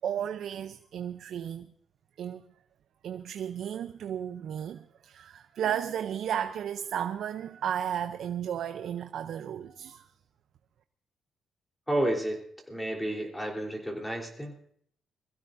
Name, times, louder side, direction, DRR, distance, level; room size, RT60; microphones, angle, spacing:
voice 1, 0.0-1.7 2.2-2.4 3.0-10.1, right 9 dB, 70° right, 0.6 m, -34 dB
voice 2, 11.9-12.4 12.7-14.5, right 1 dB, 5° left, 3.7 m, -31 dB
22.5 x 15.5 x 2.7 m
cardioid pair, 90°, 0 cm